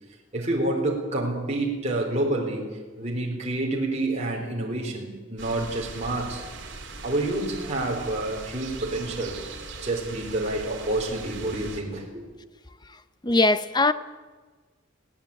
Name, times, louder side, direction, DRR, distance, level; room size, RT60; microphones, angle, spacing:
voice 1, 0.3-6.4 7.0-9.4 9.8-12.2, right 2 dB, 35° right, 4.0 m, -28 dB
sound 1, 5.4-11.8, right 3 dB, 60° right, 3.1 m, -40 dB
voice 2, 13.2-13.9, left 2 dB, 20° left, 0.8 m, -20 dB
21.0 x 17.0 x 8.5 m
head